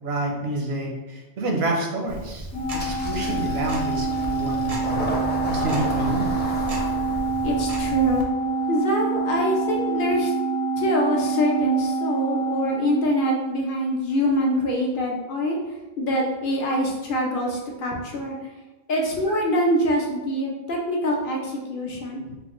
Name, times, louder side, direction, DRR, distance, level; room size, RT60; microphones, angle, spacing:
voice 1, 0.0-2.5 2.7-5.1 5.5-6.4, right 2 dB, 75° right, 1 dB, 0.9 m, -28 dB
Tick-tock, 2.1-8.2, right 1 dB, 45° right, 0.5 m, -35 dB
Organ, 2.5-13.8, right 4 dB, 85° left, 0.9 m, -26 dB
Engine starting, 2.8-10.1, left 1 dB, 15° left, 0.4 m, -35 dB
voice 2, 7.4-8.3 8.7-10.3 10.8-15.6 16.0-18.3 18.9-22.2, equal, 60° left, -1 dB, 0.7 m, -24 dB
3.7 x 2.1 x 3.0 m, 1.1 s
omnidirectional pair, 1.1 m